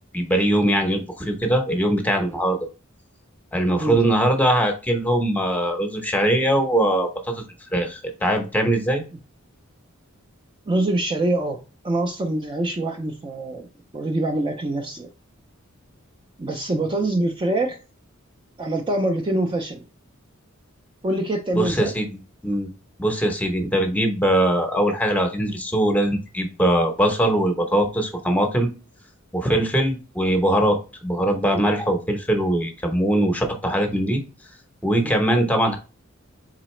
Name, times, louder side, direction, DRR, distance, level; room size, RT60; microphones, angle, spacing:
voice 1, 0.1-2.6 3.5-7.4 7.7-9.0 21.5-22.1 22.4-22.7 23.0-28.7 29.3-34.2 34.8-35.8, right 1 dB, 5° left, 0.8 m, -21 dB
voice 2, 10.7-11.6 11.8-13.7 13.9-15.1 16.4-17.8 18.6-19.8 21.0-21.9 35.0-35.2, right 1 dB, 25° right, 0.5 m, -24 dB
3.9 x 3.8 x 3.1 m
head